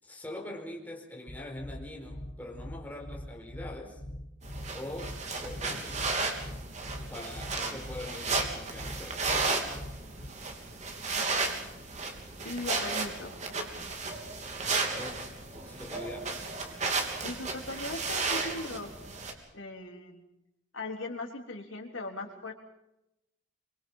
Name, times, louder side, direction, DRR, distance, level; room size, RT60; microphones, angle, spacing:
voice 1, 0.0-4.0 4.7-6.5 7.1-9.6 15.0-16.3, left 1 dB, 10° left, 0 dB, 4.8 m, -43 dB
sound 1, 1.3-10.3, left 1 dB, 30° left, 1.8 m, -42 dB
sound 2, 4.4-19.3, right 3 dB, 35° right, 3.3 m, -34 dB
voice 2, 12.4-13.4 17.2-18.9 19.5-20.3 20.7-22.5, left 2 dB, 85° left, 2 dB, 3.7 m, -39 dB
25.0 x 24.5 x 5.7 m, 0.88 s
head